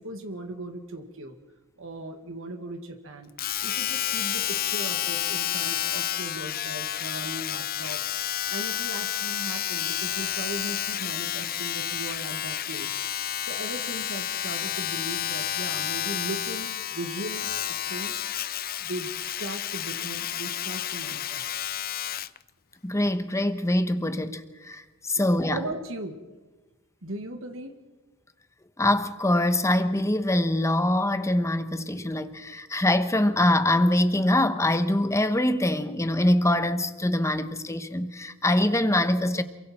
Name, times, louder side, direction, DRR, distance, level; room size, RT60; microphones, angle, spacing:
voice 1, 0.0-1.4 1.8-3.3 3.6-8.0 8.5-13.0 13.4-18.2 18.8-21.6 25.1-26.2 27.0-27.8, right 1 dB, 65° right, 1.9 m, -38 dB
Domestic sounds home sounds, 3.4-22.4 23.1-23.2, left 11 dB, 45° left, 0.6 m, -30 dB
voice 2, 22.8-25.6 28.8-39.4, left 1 dB, 15° left, 1.1 m, -24 dB
28.0 x 23.0 x 4.4 m
head